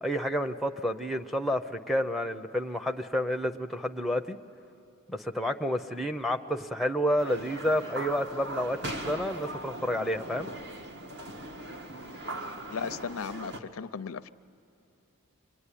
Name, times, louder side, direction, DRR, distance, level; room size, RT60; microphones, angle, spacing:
voice 1, 0.0-4.4 5.1-10.5, equal, ahead, 5 dB, 0.6 m, -30 dB
sound 1, 7.2-13.6, right 1 dB, 55° right, 1.5 m, -39 dB
voice 2, 12.7-14.3, left 6 dB, 75° left, 14 dB, 0.5 m, -36 dB
26.0 x 22.5 x 10.0 m, 2.7 s
head